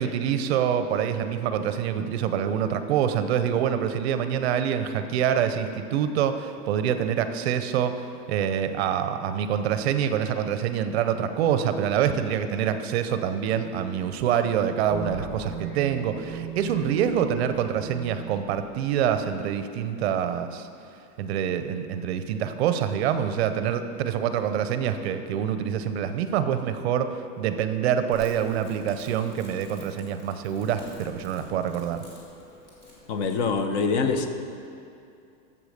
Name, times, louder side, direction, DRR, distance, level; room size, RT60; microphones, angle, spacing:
voice 1, 0.0-7.9 8.3-20.7 21.2-32.0, right 8 dB, 45° right, 9 dB, 0.6 m, -26 dB
sound 1, 14.9-19.6, right 7 dB, 5° left, 2.4 m, -38 dB
Crackle, 28.1-33.6, left 1 dB, 20° left, 2.1 m, -50 dB
voice 2, 33.1-34.3, left 4 dB, 50° left, 7 dB, 0.8 m, -24 dB
8.3 x 7.1 x 6.4 m, 2.6 s
supercardioid pair, 170°, 45 cm